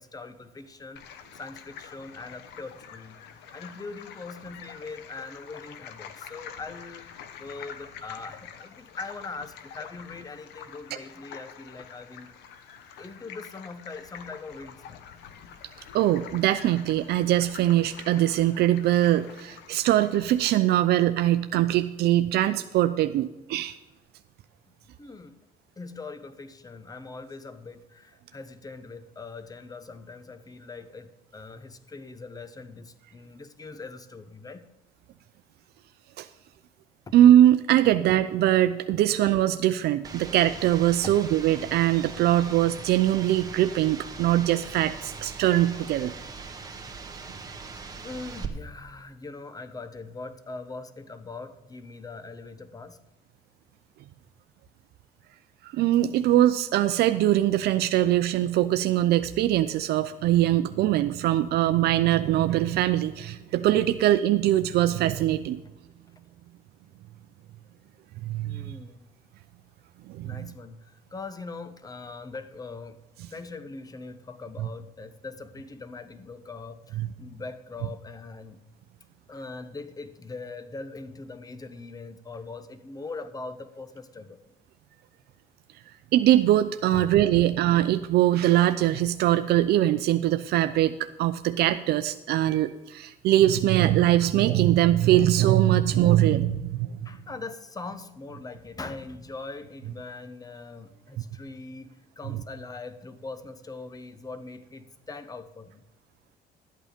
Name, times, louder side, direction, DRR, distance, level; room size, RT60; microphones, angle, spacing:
voice 1, 0.0-3.2 3.5-12.4 13.0-15.6 25.0-25.4 25.8-34.7 37.1-37.2 41.0-41.2 48.0-53.0 68.4-69.1 70.2-73.0 73.3-78.6 79.3-84.4 86.9-87.1 87.4-87.6 97.0-105.8, left 3 dB, 20° left, 12 dB, 1.0 m, -41 dB
sound 1, 1.0-20.6, left 8 dB, 85° left, 1.0 m, -46 dB
voice 2, 15.9-23.8 36.2-36.3 37.1-46.1 55.6-65.6 68.2-68.7 70.1-70.3 77.0-77.1 86.1-96.9, right 13 dB, 70° right, 9 dB, 0.5 m, -22 dB
sound 2, 40.0-48.5, right 4 dB, 20° right, 1.6 m, -41 dB
12.0 x 8.8 x 5.1 m, 1.0 s
cardioid pair, 110°, 17 cm